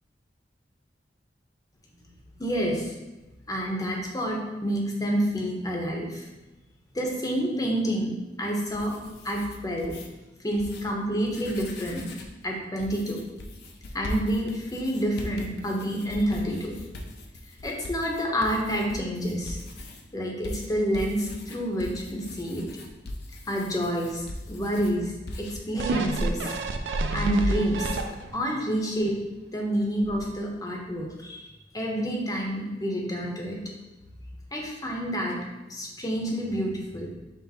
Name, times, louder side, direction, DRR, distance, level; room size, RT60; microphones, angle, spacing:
voice 1, 2.4-2.9 3.5-6.3 6.9-8.9 9.2-9.9 10.4-12.1 12.4-13.2 13.9-16.7 17.6-19.6 20.1-22.6 23.5-26.6 27.1-27.9 28.3-29.2 29.5-33.6 34.5-35.3 35.7-37.1, equal, 20° left, -1 dB, 0.7 m, -28 dB
sound 1, 8.7-10.1 10.5-10.8 11.2-12.4 12.8-20.0 20.4-24.9 25.3-25.6, left 1 dB, 65° left, 0.6 m, -40 dB
sound 2, 25.8-28.5 29.0-29.1, right 3 dB, 70° right, 0.4 m, -28 dB
5.9 x 2.0 x 4.1 m, 1.1 s
head